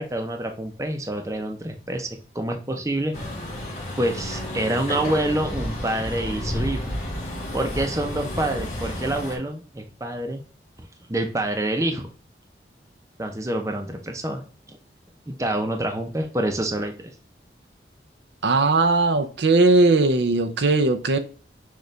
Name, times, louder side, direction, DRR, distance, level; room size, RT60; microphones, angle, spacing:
voice 1, 0.0-2.1 2.3-3.2 4.0-6.9 7.5-10.4 10.8-12.1 13.2-14.4 14.7-14.8 15.3-17.1, right 1 dB, 15° right, 0.7 m, -27 dB
Truck, 3.1-9.4, left 1 dB, 45° left, 1.9 m, -31 dB
voice 2, 18.4-21.2, right 2 dB, 80° right, 0.6 m, -19 dB
6.5 x 2.5 x 3.3 m
head